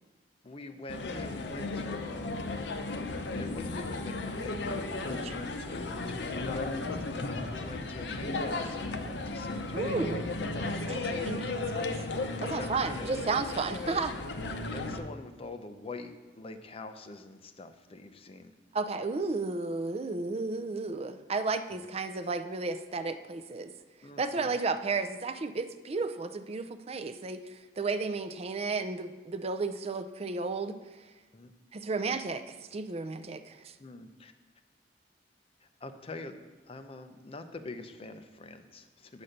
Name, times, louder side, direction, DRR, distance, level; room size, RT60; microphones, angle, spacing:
voice 1, 0.4-2.4 3.0-10.2 11.5-11.7 12.2-13.2 14.7-18.5 21.7-21.8 24.0-24.6 31.3-31.5 33.8-34.3 35.6-36.4 36.7-39.2, left 2 dB, 35° left, 8 dB, 0.6 m, -45 dB
sound 1, 0.9-15.0, left 2 dB, 70° left, 0.7 m, -35 dB
voice 2, 9.7-10.2 10.9-11.9 12.4-14.2 18.7-23.7 24.2-27.4 27.8-30.8 31.7-33.7, right 3 dB, 35° right, 7 dB, 0.5 m, -33 dB
8.8 x 4.2 x 6.5 m, 1.2 s
head